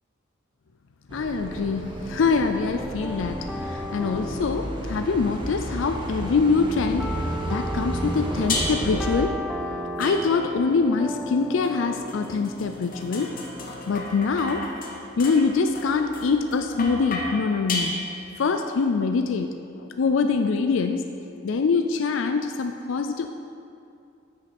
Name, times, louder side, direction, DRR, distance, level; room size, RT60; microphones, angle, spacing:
voice 1, 1.1-9.4 10.0-13.4 13.9-14.7 15.2-17.9 18.4-21.0 21.4-23.3, left 4 dB, 70° left, 6 dB, 0.4 m, -24 dB
sound 1, 1.1-9.2, right 1 dB, 25° right, 0.8 m, -33 dB
sound 2, 1.4-14.1, equal, ahead, 0.5 m, -36 dB
sound 3, 8.5-9.0 10.0-10.7 11.6-18.5, left 2 dB, 45° left, 1.0 m, -33 dB
12.5 x 6.4 x 4.3 m, 2.5 s
head